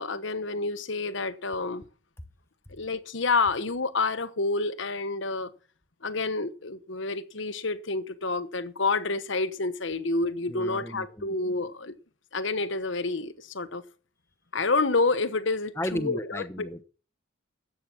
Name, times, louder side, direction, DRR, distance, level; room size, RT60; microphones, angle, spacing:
voice 1, 0.0-1.8 2.7-5.5 6.0-11.9 12.3-13.8 14.5-16.7, left 3 dB, 70° left, 1.2 m, -28 dB
voice 2, 10.5-11.4 15.8-16.8, left 1 dB, 15° left, 1.0 m, -34 dB
13.0 x 8.7 x 6.1 m
head